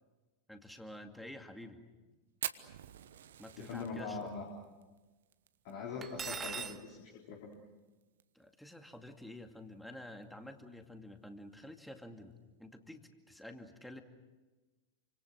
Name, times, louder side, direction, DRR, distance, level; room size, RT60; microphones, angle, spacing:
voice 1, 0.5-1.8 3.4-4.3 8.3-14.0, left 1 dB, ahead, 6 dB, 2.3 m, -50 dB
Fire, 2.4-6.9 7.2-7.3 7.5-7.6 8.0-8.4 8.9-9.0 10.1-10.2, right 10 dB, 60° right, 1.1 m, -45 dB
voice 2, 3.6-4.5 5.6-7.5, left 4 dB, 50° left, -1 dB, 3.7 m, -42 dB
Cutlery silverware, 6.0-6.8, right 6 dB, 20° right, 1.1 m, -40 dB
29.0 x 26.0 x 6.5 m, 1.2 s
figure-of-eight pair, 90°, 0 cm